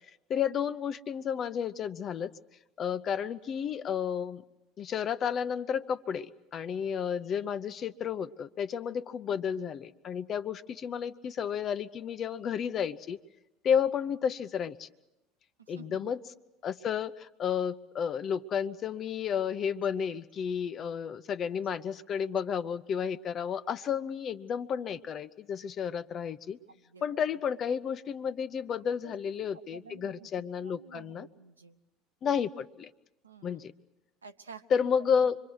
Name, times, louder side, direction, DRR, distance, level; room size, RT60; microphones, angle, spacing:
voice 1, 0.3-2.3 2.8-4.4 4.8-13.2 13.6-14.9 15.7-16.2 16.6-26.6 27.0-31.3 32.2-32.9 33.4-33.7 34.7-35.4, left 7 dB, 40° left, 14 dB, 0.8 m, -32 dB
voice 2, 15.6-16.1 26.7-27.2 29.0-29.1 29.5-31.8 33.2-33.6 34.2-34.9, right 5 dB, 85° right, 8 dB, 0.9 m, -51 dB
26.5 x 23.0 x 6.4 m, 0.96 s
figure-of-eight pair, 70°, 0 cm